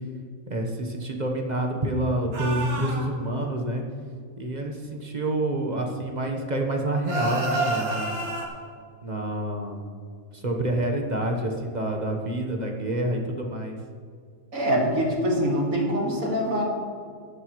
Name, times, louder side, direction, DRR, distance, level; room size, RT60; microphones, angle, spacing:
voice 1, 0.5-3.8 4.4-8.3 9.0-9.8 10.3-13.8, right 1 dB, 35° right, 2 dB, 1.2 m, -28 dB
sound 1, 2.3-3.1 7.1-8.5, right 2 dB, 90° right, 2.1 m, -28 dB
voice 2, 14.5-16.6, equal, 70° right, -1 dB, 2.5 m, -24 dB
15.0 x 11.5 x 3.1 m, 2.1 s
omnidirectional pair, 1.5 m